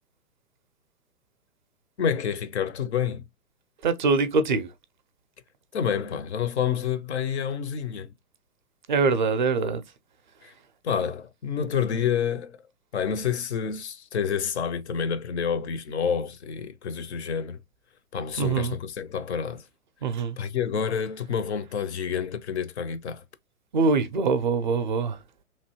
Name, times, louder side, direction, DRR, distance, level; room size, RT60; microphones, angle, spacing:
voice 1, 2.0-3.2 5.7-8.1 10.4-10.5 10.8-12.6 12.9-17.6 18.1-19.6 20.4-23.2, left 7 dB, 50° left, 0.5 m, -28 dB
voice 2, 3.8-4.7 8.9-9.8 18.4-18.8 20.0-20.4 23.7-25.2, right 4 dB, 35° right, 0.4 m, -23 dB
3.0 x 2.6 x 2.8 m
figure-of-eight pair, 125°, 45 cm